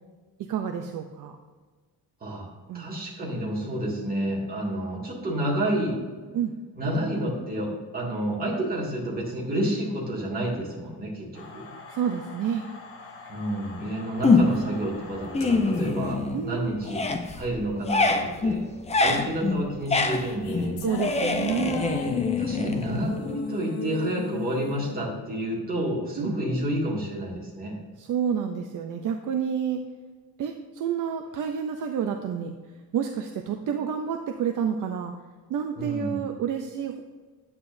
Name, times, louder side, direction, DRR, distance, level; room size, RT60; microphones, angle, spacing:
voice 1, 0.5-1.4 2.7-2.9 6.3-6.5 11.9-12.6 16.3-17.0 20.8-22.0 26.2-26.3 28.0-29.8 30.4-32.5 32.9-35.1 35.5-37.0, right 8 dB, 55° right, 5 dB, 0.6 m, -29 dB
voice 2, 2.7-6.0 6.7-11.7 13.3-17.0 17.3-18.6 19.0-20.8 22.4-27.7 35.8-36.2, right 1 dB, 25° right, -5 dB, 2.2 m, -29 dB
sound 1, 11.3-16.5, left 3 dB, 35° left, 1.1 m, -45 dB
sound 2, 14.2-14.8 15.2-16.5 16.8-23.3, left 3 dB, 20° left, 0.4 m, -25 dB
sound 3, 19.8-26.4, left 7 dB, 85° left, 1.0 m, -35 dB
9.7 x 8.8 x 2.6 m, 1.4 s
cardioid pair, 175°, 37 cm